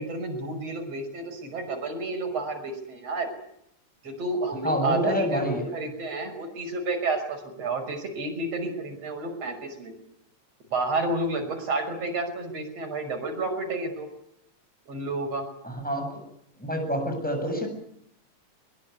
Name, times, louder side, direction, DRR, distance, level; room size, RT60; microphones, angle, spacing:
voice 1, 0.0-3.3 4.0-5.4 5.7-9.9 10.7-14.1 14.9-15.5, right 2 dB, 50° right, 4 dB, 6.8 m, -30 dB
voice 2, 4.6-5.7 15.6-16.2 16.6-17.7, equal, ahead, 4 dB, 7.6 m, -27 dB
22.5 x 22.5 x 9.6 m, 0.75 s
omnidirectional pair, 3.6 m